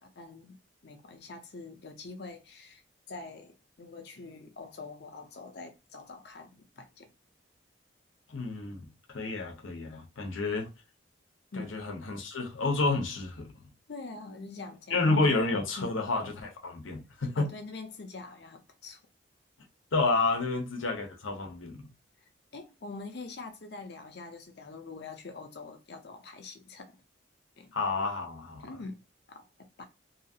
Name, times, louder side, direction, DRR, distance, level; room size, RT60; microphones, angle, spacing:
voice 1, 0.0-0.6 0.8-2.8 3.1-7.1 9.9-10.1 11.5-11.8 13.9-15.3 15.8-15.9 17.3-19.0 22.5-27.0 27.6-27.8 28.6-29.0 29.3-29.8, left 3 dB, 60° left, 0.6 m, -44 dB
voice 2, 8.3-10.7 11.6-13.5 14.9-17.5 19.9-21.9 27.7-28.7, left 3 dB, 85° left, 0.8 m, -30 dB
2.8 x 2.4 x 2.7 m
head